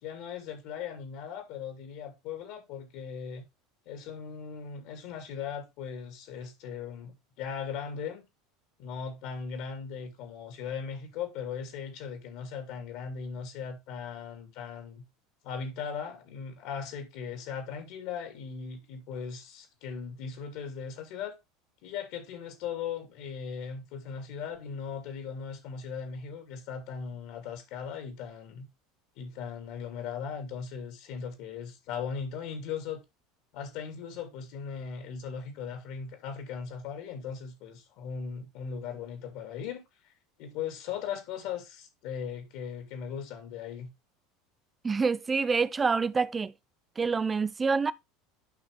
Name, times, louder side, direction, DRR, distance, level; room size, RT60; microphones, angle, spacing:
voice 1, 0.0-3.5 3.9-8.2 8.8-15.0 15.4-21.4 21.8-28.7 29.2-33.0 33.5-40.1 40.4-43.9, left 6 dB, 60° left, 2.6 m, -38 dB
voice 2, 44.8-46.5 47.0-47.9, right 5 dB, 20° right, 0.6 m, -27 dB
10.5 x 5.7 x 3.3 m
hypercardioid pair, 80°, 0 cm